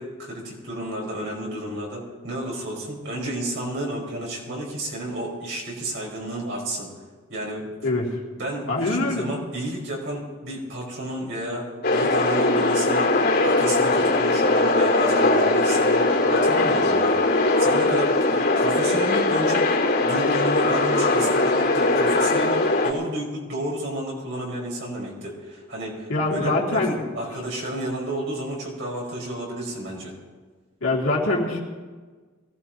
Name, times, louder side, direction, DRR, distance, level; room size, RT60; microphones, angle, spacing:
voice 1, 0.0-6.9 7.3-7.7 8.3-17.2 17.6-30.1, right 1 dB, 65° right, -4 dB, 5.4 m, -31 dB
voice 2, 8.7-9.3 26.1-27.0 30.8-31.6, left 2 dB, 90° left, -4 dB, 2.8 m, -23 dB
sound 1, 11.8-22.9, left 2 dB, 55° left, 3.9 m, -20 dB
23.5 x 17.5 x 3.0 m, 1.4 s
head